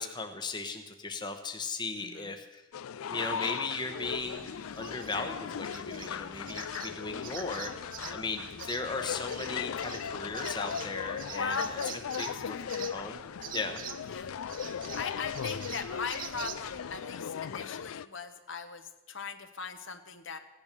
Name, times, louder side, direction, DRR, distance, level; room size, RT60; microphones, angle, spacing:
voice 1, 0.0-2.6 3.1-4.5 4.8-11.8 12.2-13.2 13.5-13.8, left 3 dB, 20° left, 6 dB, 0.9 m, -37 dB
voice 2, 2.0-2.3 9.1-9.2 11.4-11.8 12.2-12.7 14.1-14.3 15.0-20.4, left 4 dB, 60° left, 8 dB, 1.1 m, -39 dB
sound 1, 2.7-18.1, left 8 dB, 80° left, 0.4 m, -38 dB
sound 2, 4.0-17.0, right 9 dB, 40° right, 0.6 m, -46 dB
16.5 x 10.5 x 6.7 m, 1.1 s
head